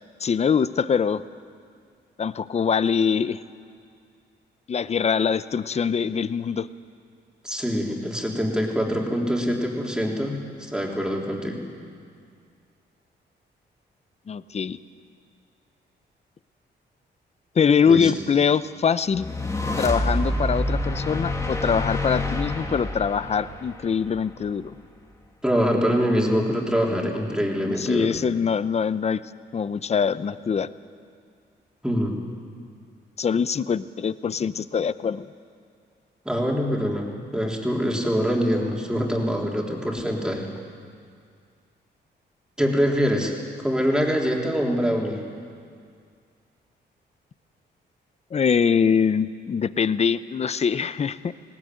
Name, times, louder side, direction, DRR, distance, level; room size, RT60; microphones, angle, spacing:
voice 1, 0.2-1.2 2.2-3.4 4.7-6.7 14.3-14.8 17.5-19.3 19.8-24.7 27.0-27.1 27.6-29.2 29.5-30.7 33.2-35.3 48.3-51.3, left 6 dB, 35° left, 15 dB, 0.6 m, -23 dB
voice 2, 7.4-11.6 17.8-18.1 25.4-28.2 31.8-32.2 36.2-40.5 42.6-45.2, equal, 5° right, -1 dB, 3.4 m, -24 dB
sound 1, 19.1-24.5, left 1 dB, 15° left, 2.2 m, -27 dB
20.0 x 18.5 x 9.3 m, 2.2 s
cardioid pair, 105°, 19 cm